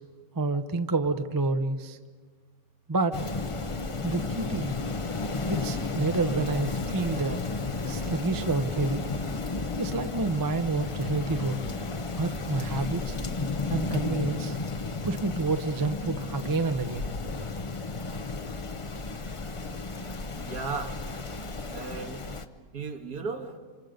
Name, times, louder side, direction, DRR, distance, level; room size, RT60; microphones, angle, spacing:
voice 1, 0.3-2.0 2.9-3.2 4.0-4.7 5.5-7.4 7.9-9.0 9.8-11.6 12.2-13.2 13.7-14.6 15.0-17.0, right 3 dB, 30° right, 9 dB, 0.3 m, -28 dB
Rain, 3.1-22.4, left 3 dB, 45° left, 0.4 m, -33 dB
sound 1, 7.8-8.0 10.4-12.2 12.7-16.0, left 4 dB, 85° left, 2.0 m, -46 dB
voice 2, 20.3-21.0 21.7-22.2 22.7-23.6, right 4 dB, 60° right, 4 dB, 2.1 m, -35 dB
29.0 x 26.5 x 5.2 m, 1.5 s
omnidirectional pair, 1.9 m